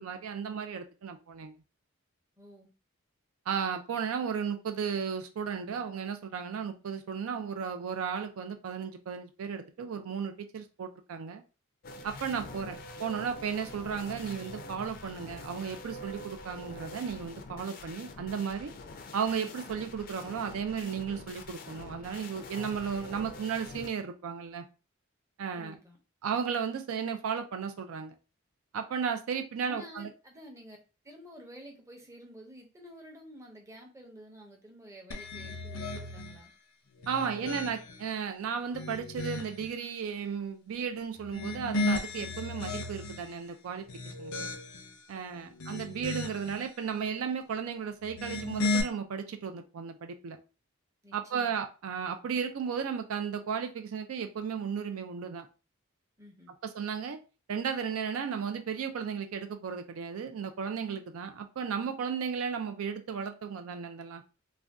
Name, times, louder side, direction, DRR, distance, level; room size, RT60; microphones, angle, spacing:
voice 1, 0.0-1.5 3.5-11.4 12.0-18.7 19.1-24.6 25.4-25.8 26.2-28.1 28.7-30.1 37.1-44.3 45.1-50.4 51.1-55.5 56.6-57.2 57.5-64.2, right 6 dB, 80° right, 7 dB, 0.4 m, -34 dB
voice 2, 2.4-2.7 12.4-12.8 25.5-26.0 29.6-30.8 31.0-36.5 37.1-37.6 45.1-45.5 51.0-51.6 56.2-56.5, equal, 15° right, 1 dB, 0.6 m, -51 dB
sound 1, 11.8-23.9, left 2 dB, 45° left, 0.4 m, -45 dB
sound 2, 35.1-36.4 36.9-38.1 38.6-39.7 41.2-43.3 43.8-45.0 45.4-46.6 48.0-48.8, left 2 dB, 85° left, 0.6 m, -35 dB
2.5 x 2.1 x 3.4 m, 0.33 s
head